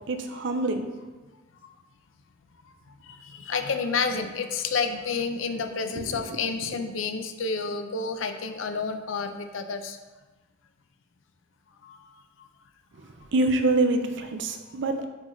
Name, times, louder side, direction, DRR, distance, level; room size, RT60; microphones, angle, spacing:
voice 1, 0.1-0.9 6.0-6.4 13.3-15.1, right 2 dB, 65° right, 7 dB, 0.6 m, -26 dB
voice 2, 3.2-10.0 11.8-12.0, left 5 dB, 85° left, 7 dB, 0.6 m, -29 dB
8.5 x 3.8 x 3.1 m, 1.2 s
head